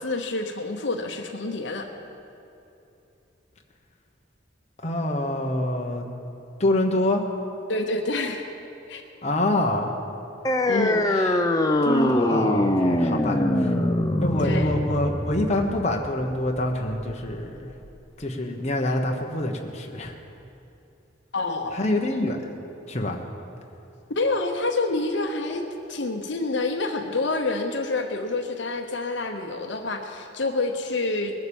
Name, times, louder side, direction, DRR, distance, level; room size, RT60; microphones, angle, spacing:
voice 1, 0.0-1.9 7.7-8.4 8.9-9.0 10.7-11.0 14.4-14.8 21.3-21.9 24.1-31.3, left 2 dB, 65° left, 4 dB, 1.0 m, -27 dB
voice 2, 4.8-6.0 6.6-7.2 9.2-9.9 11.1-11.4 11.8-13.7 14.2-17.7 18.2-20.1 21.7-22.4 22.9-23.2, left 1 dB, 35° left, 1 dB, 1.1 m, -26 dB
sound 1, 10.4-17.5, left 1 dB, 20° left, 0.7 m, -23 dB
20.5 x 7.9 x 7.1 m, 2.8 s
head